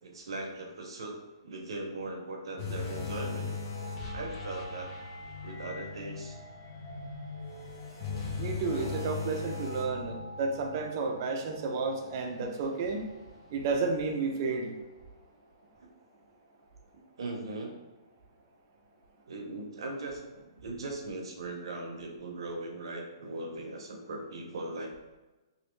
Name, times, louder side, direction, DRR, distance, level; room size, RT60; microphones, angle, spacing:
voice 1, 0.0-1.2 1.4-3.5 4.1-4.9 5.4-6.4 8.4-8.7 16.9-17.8 19.3-24.9, right 2 dB, 75° right, 1 dB, 0.7 m, -39 dB
sound 1, 2.6-14.0 14.4-14.6 15.2-15.3, left 4 dB, 35° left, 0.9 m, -40 dB
voice 2, 8.4-13.0 13.5-14.7, right 4 dB, 40° right, 3 dB, 0.5 m, -31 dB
3.0 x 2.6 x 3.1 m, 1.1 s
hypercardioid pair, 150°, 3 cm